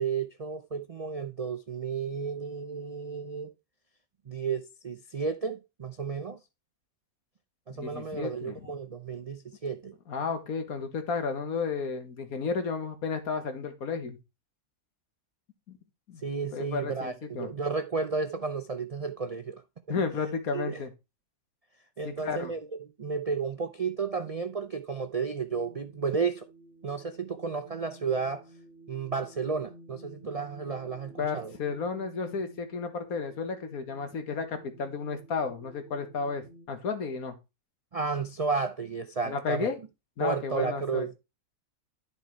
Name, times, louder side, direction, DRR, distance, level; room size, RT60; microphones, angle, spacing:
voice 1, 0.0-3.5 4.3-6.4 7.7-9.9 16.2-19.6 19.9-20.0 20.5-20.8 22.0-22.7 23.0-26.5 26.8-28.4 28.9-31.5 37.9-39.7 40.2-41.1, right 5 dB, 55° right, 0.4 m, -32 dB
voice 2, 7.7-8.6 10.1-14.2 15.7-15.8 16.1-16.2 16.5-17.5 19.9-20.9 22.1-22.5 31.2-37.4 39.3-39.8 40.2-41.1, left 5 dB, 80° left, 1.8 m, -32 dB
sound 1, 25.5-36.7, equal, 55° left, 1.9 m, -53 dB
11.0 x 4.4 x 4.5 m
omnidirectional pair, 1.5 m